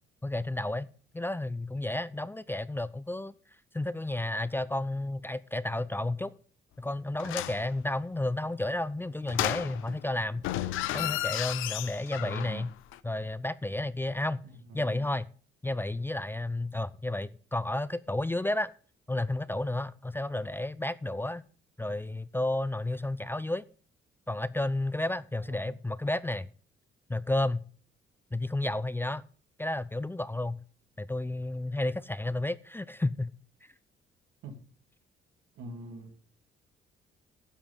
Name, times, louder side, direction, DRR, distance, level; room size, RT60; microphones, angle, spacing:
voice 1, 0.2-0.9 1.1-3.3 3.7-6.3 6.8-12.7 13.0-14.4 14.7-15.2 15.6-18.7 19.1-21.4 21.8-23.6 24.3-26.5 27.1-27.6 28.3-29.2 29.6-30.6 31.0-33.3 33.6-33.7, left 2 dB, 10° left, 0.5 m, -32 dB
sound 1, 7.2-7.7 9.3-10.0 10.4-12.6 12.9-13.0, left 14 dB, 90° left, 0.6 m, -33 dB
voice 2, 12.2-12.6 14.4-15.0 25.5-25.7 34.4-34.5 35.6-36.1, right 3 dB, 85° right, 2.7 m, -44 dB
12.5 x 7.3 x 5.3 m
cardioid pair, 90°, 20 cm